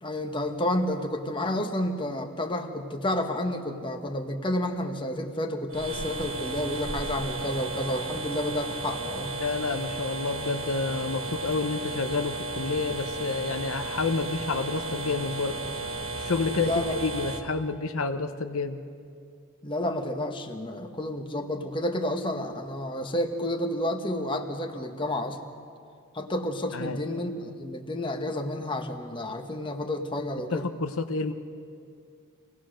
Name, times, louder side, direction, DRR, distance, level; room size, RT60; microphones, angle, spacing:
voice 1, 0.0-9.3 16.6-16.9 19.6-25.4 26.1-30.6, left 1 dB, 25° left, 4 dB, 1.1 m, -30 dB
sound 1, 5.7-17.4, right 3 dB, 65° right, 1.5 m, -34 dB
voice 2, 9.3-15.6 16.2-18.8 26.7-27.0 30.5-31.3, left 4 dB, 70° left, 8 dB, 0.9 m, -29 dB
26.0 x 18.0 x 6.4 m, 2.3 s
head